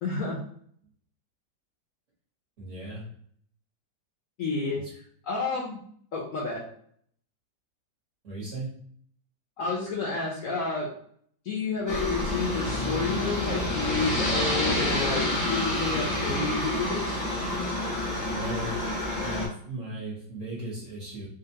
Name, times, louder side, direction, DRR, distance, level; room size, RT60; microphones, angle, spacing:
voice 1, 0.0-0.4 4.4-4.8 5.3-5.8 6.1-6.6 9.6-10.9 11.4-17.1, left 4 dB, 65° left, -4 dB, 0.9 m, -30 dB
voice 2, 2.6-3.0 4.7-4.9 8.2-8.7 18.3-18.7 19.1-21.3, right 2 dB, 45° right, -6 dB, 1.5 m, -37 dB
Aircraft, 11.9-19.5, left 1 dB, 40° left, 0.6 m, -28 dB
3.7 x 2.5 x 2.8 m, 0.62 s
omnidirectional pair, 2.0 m